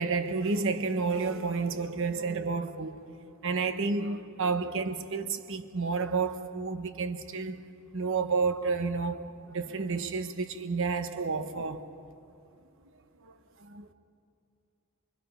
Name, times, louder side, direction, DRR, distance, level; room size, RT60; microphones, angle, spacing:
voice 1, 0.0-11.9 13.2-13.9, right 4 dB, 60° right, 1.1 m, -31 dB
25.5 x 23.5 x 5.7 m
head